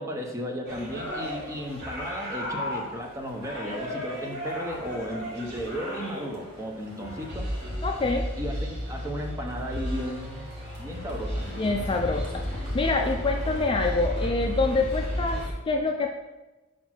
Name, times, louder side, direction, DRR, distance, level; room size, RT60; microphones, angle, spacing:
voice 1, 0.0-7.5 8.4-10.5 10.8-11.5, equal, 15° right, 1 dB, 0.7 m, -35 dB
sound 1, 0.6-15.5, equal, 50° right, 1.6 m, -33 dB
voice 2, 7.8-8.3 11.5-16.1, left 3 dB, 25° left, 2 dB, 0.4 m, -26 dB
4.9 x 4.2 x 6.0 m, 1.1 s
head